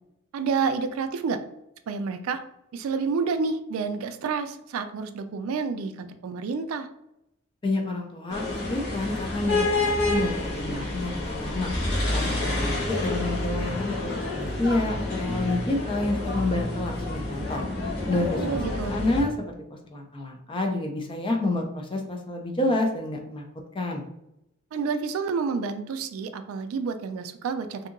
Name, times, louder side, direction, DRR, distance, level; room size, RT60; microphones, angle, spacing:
voice 1, 0.3-1.4 1.9-2.4 2.7-6.9 18.4-19.0 24.7-27.8, right 5 dB, 80° right, 9 dB, 0.3 m, -29 dB
voice 2, 7.6-11.7 12.1-17.7 18.1-18.6 18.9-23.5 23.7-24.1, left 2 dB, 25° left, 3 dB, 0.4 m, -29 dB
sound 1, 8.3-19.2, left 2 dB, 50° left, 1.0 m, -28 dB
2.7 x 2.6 x 2.5 m, 0.84 s
head